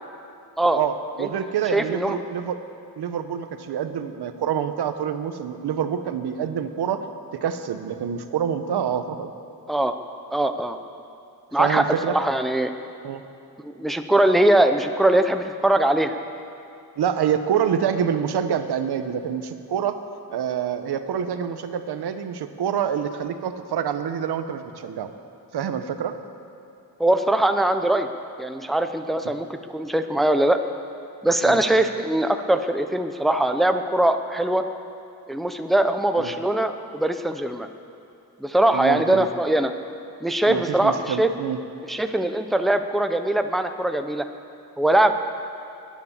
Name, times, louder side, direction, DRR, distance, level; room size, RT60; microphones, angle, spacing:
voice 1, 0.7-2.6 3.0-7.1 7.3-9.3 11.6-12.2 13.0-13.2 17.0-20.0 20.3-25.1 25.5-26.1 31.4-31.6 36.2-36.3 38.7-39.3 40.5-41.6, right 8 dB, 90° right, 9 dB, 1.1 m, -26 dB
voice 2, 1.7-2.1 9.7-10.0 10.3-10.8 11.5-12.7 13.6-16.2 27.0-28.1 28.4-30.6 31.2-34.6 35.3-37.7 38.4-39.7 40.2-41.3 41.9-44.3 44.8-45.3, right 1 dB, ahead, 7 dB, 0.7 m, -21 dB
20.5 x 9.7 x 7.3 m, 2.7 s
wide cardioid pair, 140°, 38 cm